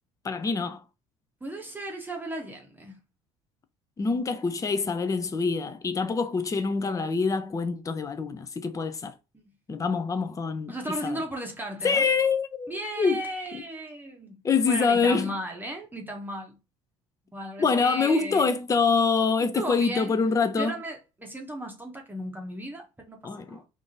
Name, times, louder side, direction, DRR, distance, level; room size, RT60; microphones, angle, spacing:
voice 1, 0.2-0.8 4.0-9.1 9.7-10.7 11.0-11.2 11.8-12.7 13.0-13.2 14.4-15.3 17.6-20.7 23.2-23.6, left 5 dB, 20° left, 0.5 m, -25 dB
voice 2, 1.4-3.0 9.3-9.5 10.7-12.1 12.7-16.6 17.3-18.5 19.5-20.2 20.5-23.7, right 1 dB, 10° right, 0.9 m, -36 dB
3.5 x 2.6 x 2.7 m
hypercardioid pair, 60°, 17 cm